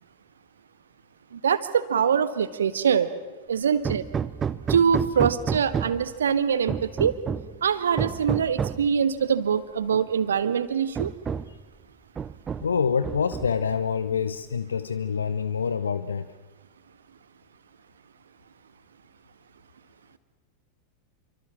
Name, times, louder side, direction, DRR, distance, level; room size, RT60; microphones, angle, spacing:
voice 1, 1.3-3.1 3.5-4.0 4.7-7.1 7.6-11.1, right 7 dB, 65° right, 12 dB, 1.6 m, -23 dB
Hammer, 3.8-6.1 6.7-7.6 8.0-8.9 9.9-10.0 10.4-10.5 10.9-11.6 12.2-12.8 13.0-13.7, right 7 dB, 20° right, 0.7 m, -30 dB
voice 2, 12.6-16.3, left 6 dB, 70° left, 13 dB, 0.9 m, -26 dB
28.5 x 25.0 x 7.4 m, 1.3 s
figure-of-eight pair, 90°, 0 cm